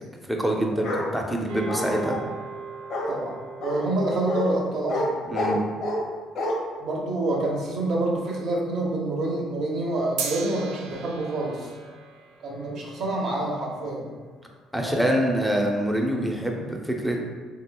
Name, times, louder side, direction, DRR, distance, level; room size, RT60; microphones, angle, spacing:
voice 1, 0.2-2.2 5.3-5.6 14.7-17.2, equal, 5° right, 1 dB, 0.5 m, -25 dB
Bark, 0.8-1.1 1.7-2.2 2.9-3.1 3.6-3.8 4.3-4.4 4.9-5.1 5.3-6.0 6.4-6.5, left 1 dB, 70° left, 1.1 m, -28 dB
sound 1, 1.5-7.9 10.2-14.6, right 5 dB, 90° right, 0.3 m, -40 dB
voice 2, 3.1-5.2 6.8-11.7 12.4-14.1 14.8-15.2, right 2 dB, 65° right, -2 dB, 0.8 m, -27 dB
3.2 x 2.9 x 2.2 m, 1.4 s
supercardioid pair, 80°, 0 cm